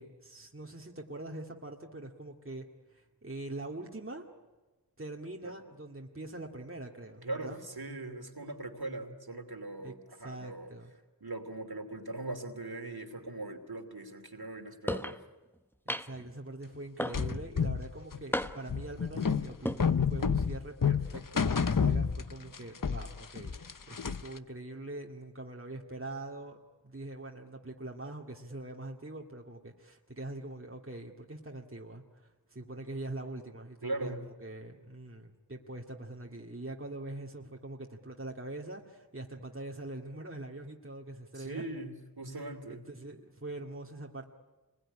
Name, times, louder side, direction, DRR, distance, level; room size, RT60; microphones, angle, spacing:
voice 1, 0.0-4.3 5.0-7.6 9.8-9.9 10.2-10.9 15.9-26.6 26.8-41.6 42.3-44.2, right 2 dB, 30° right, 0 dB, 2.1 m, -43 dB
voice 2, 7.2-10.7 11.2-15.2 33.8-34.2 41.3-42.8, right 2 dB, 60° right, 5 dB, 2.9 m, -40 dB
sound 1, 14.9-15.2 15.9-16.3 17.0-17.5 18.3-18.8 19.5-19.8, equal, 5° left, 1.1 m, -34 dB
sound 2, 17.1-22.6 22.8-24.4, left 6 dB, 50° left, 0.8 m, -29 dB
27.0 x 21.5 x 10.0 m, 1.2 s
wide cardioid pair, 40°, 42 cm